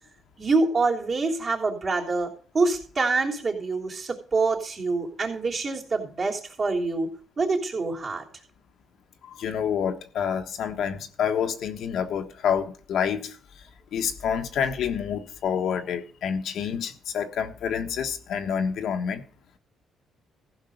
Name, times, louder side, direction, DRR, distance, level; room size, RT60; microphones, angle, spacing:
voice 1, 0.4-7.1 7.4-8.2, right 3 dB, 45° right, 3.3 m, -26 dB
voice 2, 9.2-13.4 13.9-19.2, left 7 dB, 75° left, 1.3 m, -28 dB
15.0 x 5.4 x 6.6 m
cardioid pair, 90°, 0 cm